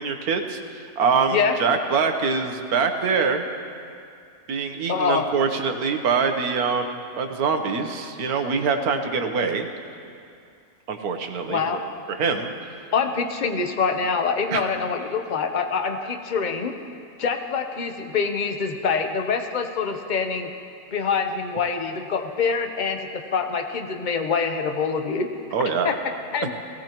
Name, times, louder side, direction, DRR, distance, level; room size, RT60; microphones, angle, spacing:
voice 1, 0.0-3.5 4.5-9.7 10.9-11.8 12.1-12.5 14.5-14.6 25.5-25.9, right 5 dB, 75° right, 6 dB, 1.4 m, -24 dB
voice 2, 4.9-5.2 11.5-11.8 12.9-16.7 17.2-20.5 20.9-25.3 25.8-26.0 26.3-26.5, left 5 dB, 40° left, 6 dB, 0.8 m, -25 dB
19.0 x 16.5 x 3.0 m, 2.4 s
omnidirectional pair, 1.6 m